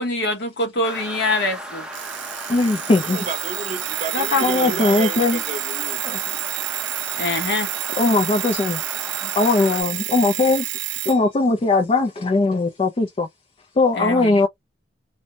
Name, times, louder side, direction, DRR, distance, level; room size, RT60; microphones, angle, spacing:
voice 1, 0.0-1.9 4.1-4.8 7.2-7.7 9.2-9.3 14.0-14.4, left 2 dB, 65° left, 1.0 m, -24 dB
sound 1, 0.8-9.8, right 1 dB, 5° right, 0.7 m, -35 dB
Alarm, 1.9-11.2, right 16 dB, 70° right, 0.3 m, -29 dB
voice 2, 2.5-3.2 4.4-5.4 6.0-6.2 8.0-8.8 9.4-10.7 11.0-13.3 13.8-14.5, left 3 dB, 30° left, 0.4 m, -19 dB
voice 3, 3.0-6.0, right 3 dB, 40° right, 0.7 m, -31 dB
2.6 x 2.1 x 2.7 m
head